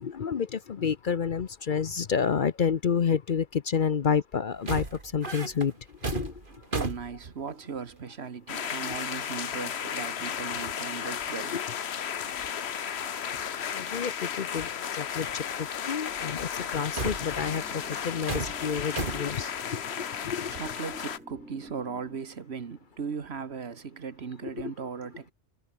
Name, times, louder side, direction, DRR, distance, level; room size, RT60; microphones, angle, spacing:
voice 1, 0.0-4.8 5.1-5.7 6.1-6.3 11.5-11.6 13.7-14.1 14.4-14.7 15.0-15.4 15.9-17.6 18.0-19.8 20.2-20.5, left 7 dB, 50° left, 0.8 m, -29 dB
sound 1, 4.5-7.9 9.8-9.9 10.2-10.7 10.9-11.3 11.7-11.8 12.1-12.3 13.4-13.5 14.9-15.0 16.6-19.5, right 2 dB, 45° right, 3.0 m, -36 dB
voice 2, 6.5-11.6 20.2-25.3, right 6 dB, 65° right, 1.6 m, -38 dB
sound 2, 8.5-21.2, left 8 dB, 65° left, 1.2 m, -34 dB
sound 3, 17.2-22.2, equal, 5° right, 2.9 m, -51 dB
omnidirectional pair, 1.2 m